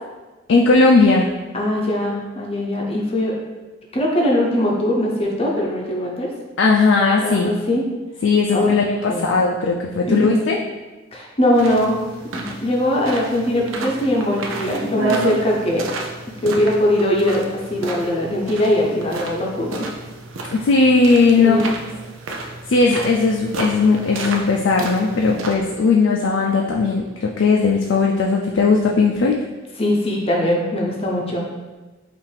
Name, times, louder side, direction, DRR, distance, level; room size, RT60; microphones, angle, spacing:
voice 1, 0.5-1.3 6.6-7.6 8.2-10.6 20.5-21.6 22.7-29.4, left 4 dB, 70° left, 0 dB, 0.4 m, -17 dB
voice 2, 1.5-3.3 3.9-6.3 7.2-7.9 8.5-8.7 9.1-9.3 10.0-10.4 11.1-12.0 12.3-15.9 16.4-17.4 17.7-19.9 21.4-21.7 29.8-31.4, left 1 dB, 30° left, -2 dB, 0.7 m, -21 dB
sound 1, 11.5-25.5, right 3 dB, 85° right, 0.5 m, -31 dB
5.5 x 2.5 x 3.3 m, 1.2 s
head